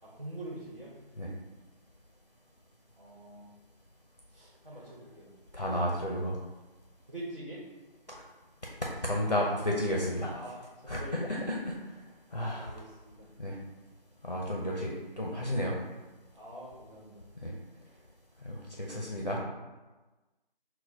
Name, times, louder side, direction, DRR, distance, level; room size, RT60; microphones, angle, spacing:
voice 1, 0.0-1.0 3.0-3.5 4.3-5.3 5.7-6.0 7.1-7.6 10.2-11.4 12.5-13.3 16.3-17.3, right 1 dB, 60° right, -6 dB, 1.3 m, -45 dB
voice 2, 5.5-6.4 8.1-8.2 8.8-10.3 10.9-11.8 12.3-12.7 13.4-13.6 14.2-15.8 17.4-17.5 18.4-19.4, left 1 dB, 45° left, -2 dB, 0.5 m, -32 dB
4.4 x 2.1 x 4.5 m, 1.2 s
figure-of-eight pair, 175°, 29 cm